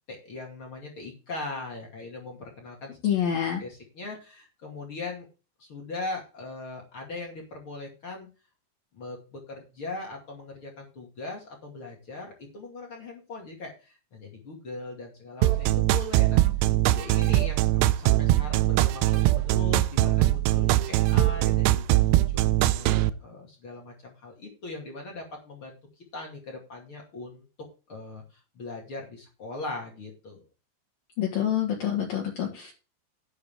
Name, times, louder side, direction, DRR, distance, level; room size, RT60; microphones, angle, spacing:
voice 1, 0.1-3.0 3.6-5.3 5.6-8.3 8.9-16.4 16.9-25.8 26.1-27.5 27.9-30.4, left 2 dB, 35° left, 0 dB, 2.5 m, -40 dB
voice 2, 3.0-3.6 31.2-32.7, left 9 dB, 60° left, -1 dB, 3.2 m, -27 dB
sound 1, 15.4-23.1, right 15 dB, 80° right, 2.7 m, -22 dB
11.5 x 9.5 x 3.6 m, 0.33 s
omnidirectional pair, 5.0 m